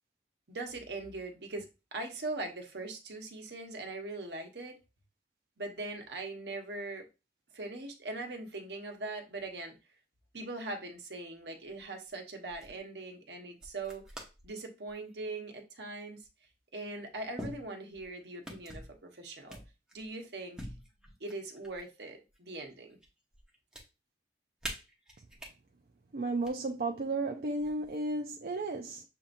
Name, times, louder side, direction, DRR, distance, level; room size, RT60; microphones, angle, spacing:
voice 1, 0.5-4.7 5.6-7.1 7.5-9.7 10.3-14.0 14.4-16.3 16.7-19.6 19.9-20.6 21.2-23.0, right 2 dB, 75° right, 1.0 m, -41 dB
sound 1, 11.8-12.1 12.5-12.8 13.6-14.5 14.9-15.2 16.2-16.3 17.4-18.1 18.4-19.0 19.5-20.1 20.6-21.9 22.3-23.1 23.3-23.8 24.6-25.5 26.3-26.5 27.6-28.1, equal, 5° right, 0.9 m, -45 dB
voice 2, 26.1-29.0, right 2 dB, 55° right, 0.5 m, -33 dB
6.8 x 2.8 x 2.6 m
head